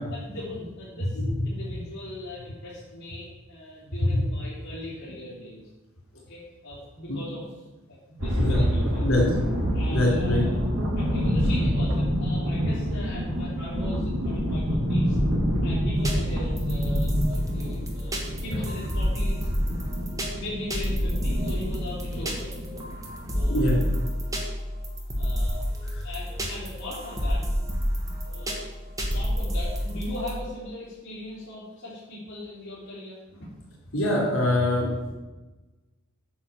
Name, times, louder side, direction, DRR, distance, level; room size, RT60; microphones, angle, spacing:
voice 1, 0.1-5.6 6.3-7.4 7.9-9.1 9.7-10.6 10.9-15.2 15.6-19.5 20.3-22.7 23.3-23.9 24.6-24.7 25.1-27.4 28.0-28.6 29.1-33.5, left 1 dB, 55° left, -11 dB, 3.1 m, -39 dB
sound 1, 8.2-24.0, equal, 85° right, 2.7 m, -27 dB
voice 2, 9.8-10.4 23.5-23.8 25.9-26.1 33.9-34.9, left 1 dB, 75° left, -5 dB, 3.2 m, -24 dB
sound 2, 16.0-30.4, equal, 15° right, 1.4 m, -29 dB
8.8 x 4.7 x 7.0 m, 1.1 s
head